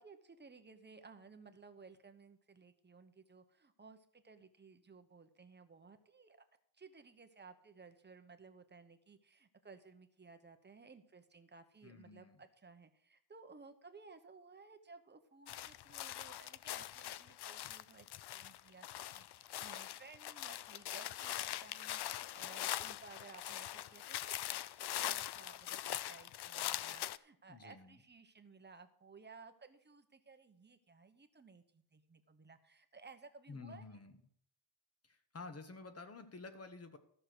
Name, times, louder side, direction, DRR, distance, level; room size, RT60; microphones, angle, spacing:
voice 1, 0.0-6.4 6.7-18.9 19.1-33.8, right 4 dB, 25° right, 8 dB, 0.9 m, -58 dB
voice 2, 11.8-12.4 27.5-28.0 33.5-34.2 35.0-37.0, left 3 dB, 35° left, 8 dB, 1.2 m, -51 dB
sound 1, 15.5-27.2, left 13 dB, 60° left, 0.5 m, -42 dB
14.0 x 6.6 x 6.1 m, 0.65 s
wide cardioid pair, 145°, 44 cm